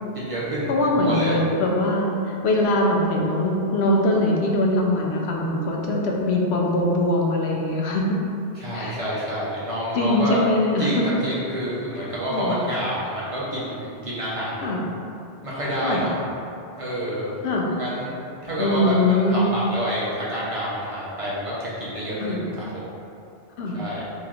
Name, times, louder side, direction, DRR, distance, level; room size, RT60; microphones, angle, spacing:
voice 1, 0.1-1.4 8.5-10.4 10.8-14.7 15.4-16.1 16.8-17.3 17.8-22.7 23.7-24.0, equal, 35° right, -8 dB, 0.7 m, -28 dB
voice 2, 0.7-8.2 8.7-9.0 9.9-11.0 12.3-12.6 14.6-14.8 15.8-16.0 17.4-17.7 18.6-19.5 22.2-22.4 23.6-23.8, left 1 dB, 85° left, -1 dB, 0.9 m, -22 dB
3.0 x 3.0 x 3.7 m, 2.6 s
omnidirectional pair, 1.1 m